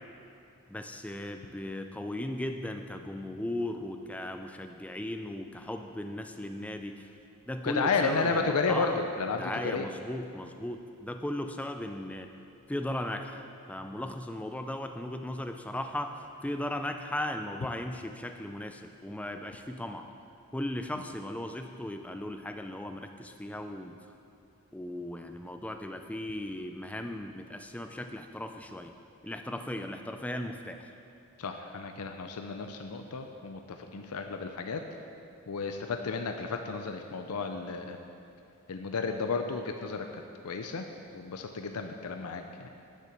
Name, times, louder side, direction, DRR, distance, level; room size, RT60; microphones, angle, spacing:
voice 1, 0.7-7.1 7.5-9.0 9.3-12.3 12.7-13.4 13.7-20.1 20.5-24.1 24.7-28.9 29.2-30.9, left 1 dB, 5° left, 6 dB, 0.3 m, -37 dB
voice 2, 7.6-9.9 31.4-34.8 35.5-38.0 38.7-40.9 41.1-42.7, left 4 dB, 90° left, 5 dB, 0.6 m, -32 dB
10.5 x 6.8 x 7.2 m, 2.6 s
head